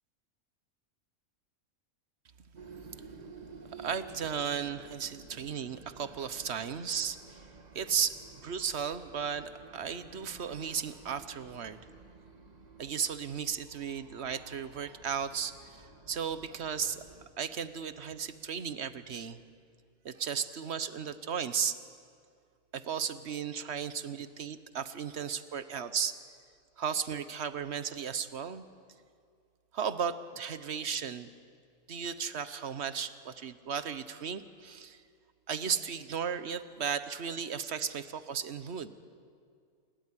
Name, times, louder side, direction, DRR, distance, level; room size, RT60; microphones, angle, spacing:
sound 1, 2.6-17.3, right 4 dB, 30° right, 1.7 m, -53 dB
voice 1, 3.7-7.5 7.7-8.2 8.4-11.8 12.8-17.0 17.4-19.4 20.0-21.8 22.7-26.2 26.8-28.6 29.7-31.3 31.9-35.0 35.5-38.9, right 7 dB, 55° right, 12 dB, 1.2 m, -35 dB
28.5 x 17.0 x 9.9 m, 2.2 s
omnidirectional pair, 1.4 m